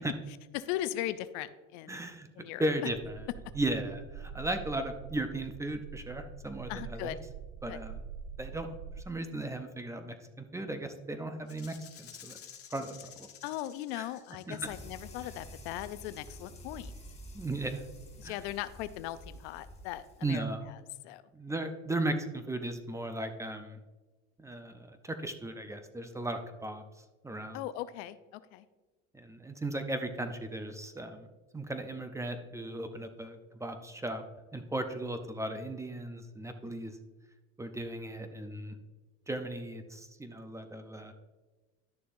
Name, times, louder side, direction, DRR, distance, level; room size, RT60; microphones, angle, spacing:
voice 1, 0.5-2.0 2.4-2.7 6.7-7.2 7.7-7.8 13.4-16.9 18.2-20.4 20.7-20.8 21.0-21.2 27.5-28.6 36.6-36.7, left 14 dB, 75° left, 14 dB, 0.5 m, -38 dB
voice 2, 1.9-2.3 2.6-3.3 3.5-7.2 7.6-8.0 8.4-8.7 9.0-10.2 10.5-12.4 12.7-12.9 13.9-14.1 14.5-14.7 17.3-17.8 18.2-18.4 20.2-20.7 21.3-23.8 24.4-26.8 27.2-27.6 29.1-31.3 31.5-34.2 34.5-37.0 37.6-38.8 39.3-41.1, right 1 dB, 10° right, 8 dB, 0.6 m, -36 dB
sound 1, 2.9-9.0, right 6 dB, 50° right, 0.6 m, -45 dB
Rattle (instrument), 11.5-15.3, left 9 dB, 40° left, 1.2 m, -52 dB
sound 2, 14.6-20.4, equal, 20° left, 1.5 m, -49 dB
11.5 x 6.6 x 2.6 m, 1.2 s
supercardioid pair, 105°, 34 cm